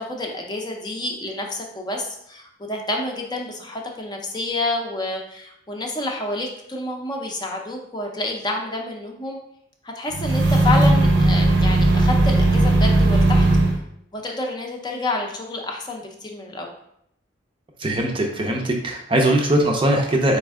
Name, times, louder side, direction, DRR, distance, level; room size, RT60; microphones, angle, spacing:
voice 1, 0.0-9.4 9.8-13.5 14.1-16.7, left 2 dB, 25° left, 1 dB, 0.6 m, -29 dB
sound 1, 10.1-13.8, right 2 dB, 80° right, 0.8 m, -17 dB
voice 2, 17.8-20.4, right 1 dB, 30° right, 1 dB, 0.5 m, -20 dB
4.2 x 3.2 x 3.6 m, 0.73 s
head